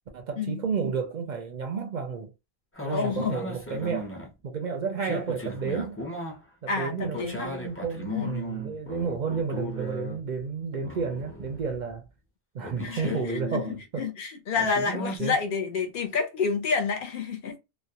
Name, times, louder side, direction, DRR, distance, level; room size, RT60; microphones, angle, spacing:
voice 1, 0.1-2.3 2.8-4.1 4.4-6.0 6.6-12.0 12.5-14.1 14.9-15.4, right 5 dB, 55° right, 0.6 m, -31 dB
sound 1, 2.7-4.3 5.0-6.4 7.0-10.4 10.8-12.0 12.6-13.8 14.5-15.2, equal, 15° left, 0.5 m, -37 dB
voice 2, 2.9-3.4 6.7-7.5 8.1-8.3 12.8-17.6, left 5 dB, 65° left, 0.7 m, -29 dB
2.3 x 2.1 x 2.7 m
omnidirectional pair, 1.0 m